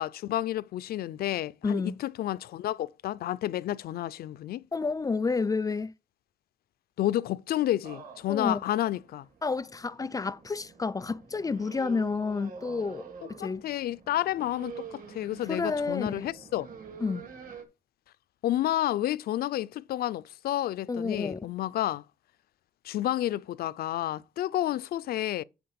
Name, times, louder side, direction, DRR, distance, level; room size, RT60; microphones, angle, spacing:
voice 1, 0.0-4.6 7.0-9.3 13.4-16.7 18.4-22.0 22.8-25.4, left 13 dB, 90° left, 0.4 m, -30 dB
voice 2, 1.6-2.0 4.7-5.9 8.3-8.6 9.4-13.6 15.5-16.3 17.0-17.3 20.9-21.5, left 4 dB, 25° left, 0.4 m, -30 dB
sound 1, 7.8-17.6, right 6 dB, 65° right, 2.7 m, -47 dB
9.5 x 4.2 x 6.9 m
cardioid pair, 115°, 15 cm